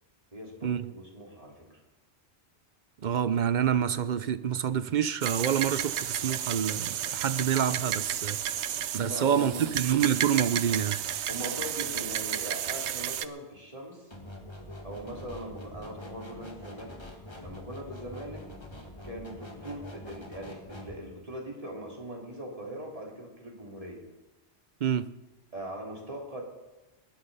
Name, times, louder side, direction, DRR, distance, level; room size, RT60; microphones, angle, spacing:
voice 1, 0.3-1.7 8.7-9.7 11.3-14.1 14.8-17.0 17.4-18.5 19.0-24.0 25.5-26.4, right 1 dB, 30° right, -1 dB, 3.4 m, -41 dB
voice 2, 3.0-8.4 8.9-11.0 24.8-25.1, right 9 dB, 50° right, 14 dB, 0.6 m, -27 dB
sound 1, 5.2-13.3, right 10 dB, 80° right, 0.9 m, -32 dB
sound 2, 14.1-21.0, left 1 dB, 25° left, 1.8 m, -45 dB
19.5 x 9.9 x 5.5 m, 1.1 s
omnidirectional pair, 1.1 m